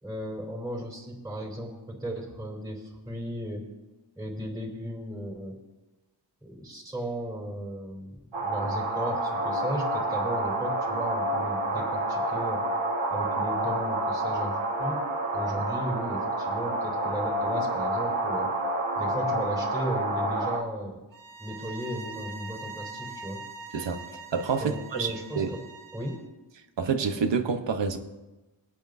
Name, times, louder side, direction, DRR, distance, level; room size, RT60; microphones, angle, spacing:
voice 1, 0.0-3.7 4.2-5.6 6.4-12.6 13.1-14.5 14.8-15.1 15.3-18.5 19.0-21.0 21.4-23.4 24.6-25.6 25.9-26.2, equal, 5° right, -3 dB, 3.7 m, -35 dB
sound 1, 8.3-20.6, right 1 dB, 85° right, 1.7 m, -29 dB
sound 2, 21.1-26.3, right 3 dB, 45° right, 0.9 m, -43 dB
voice 2, 24.3-25.5 26.8-28.0, right 5 dB, 70° right, 7 dB, 1.1 m, -28 dB
23.0 x 8.8 x 2.7 m, 1.1 s
wide cardioid pair, 105°, 46 cm